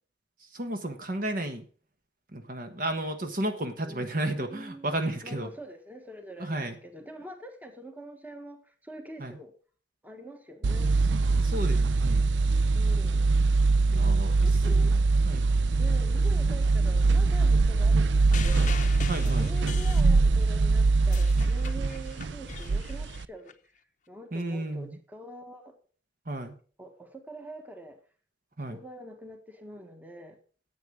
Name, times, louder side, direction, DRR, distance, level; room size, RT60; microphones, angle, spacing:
voice 1, 0.5-1.6 2.3-5.5 6.4-6.8 9.2-9.4 11.4-12.3 13.9-14.5 14.8-15.0 15.2-15.4 19.1-19.5 24.3-25.0 26.3-26.5 28.6-28.8, right 1 dB, 50° right, 7 dB, 1.4 m, -33 dB
voice 2, 3.5-5.0 5.2-9.5 10.0-10.9 12.7-13.4 14.4-15.0 15.8-18.7 19.3-23.5 24.1-25.7 26.8-28.0 28.7-30.4, right 1 dB, 10° right, 5 dB, 1.5 m, -45 dB
sound 1, 10.6-23.3, right 3 dB, 75° right, 0.5 m, -23 dB
sound 2, 18.3-20.5 20.9-23.5 24.4-24.5, left 6 dB, 45° left, 0.7 m, -41 dB
10.5 x 8.3 x 6.3 m, 0.42 s
head